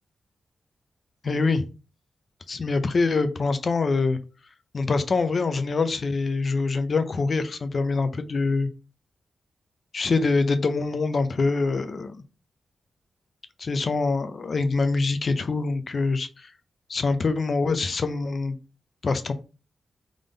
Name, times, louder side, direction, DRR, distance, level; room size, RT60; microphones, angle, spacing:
voice 1, 1.2-1.7 2.5-4.2 4.7-8.7 9.9-12.2 13.6-16.5 16.9-18.6 19.0-19.3, left 3 dB, 45° left, 10 dB, 0.5 m, -24 dB
3.7 x 3.5 x 3.8 m, 0.32 s
wide cardioid pair, 130°, 0 cm